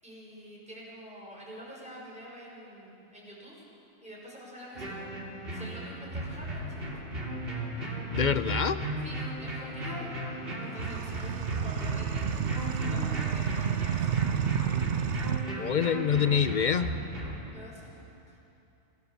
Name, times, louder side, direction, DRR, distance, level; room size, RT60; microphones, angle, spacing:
voice 1, 0.0-3.6 4.0-7.0 9.0-14.2 15.7-15.8 17.5-18.4, equal, 5° right, -5 dB, 5.8 m, -47 dB
sound 1, 4.7-17.4, right 1 dB, 50° right, 3.2 m, -35 dB
voice 2, 8.1-8.8 15.6-16.9, left 7 dB, 50° left, 11 dB, 0.6 m, -26 dB
sound 2, 10.8-15.5, right 9 dB, 75° right, 1.0 m, -31 dB
27.0 x 17.0 x 7.2 m, 2.9 s
omnidirectional pair, 1.2 m